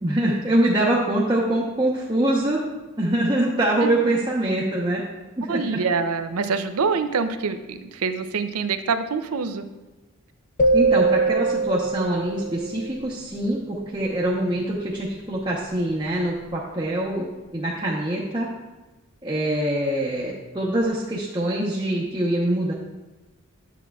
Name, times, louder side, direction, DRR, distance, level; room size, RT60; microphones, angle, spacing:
voice 1, 0.0-2.6 3.0-5.0 5.4-5.8 10.7-18.5 19.2-22.7, right 1 dB, 20° right, -6 dB, 0.8 m, -24 dB
voice 2, 5.5-9.6, right 5 dB, 90° right, 10 dB, 0.5 m, -25 dB
sound 1, 10.6-12.9, right 3 dB, 35° left, 0.4 m, -21 dB
10.0 x 7.3 x 2.3 m, 1.1 s
head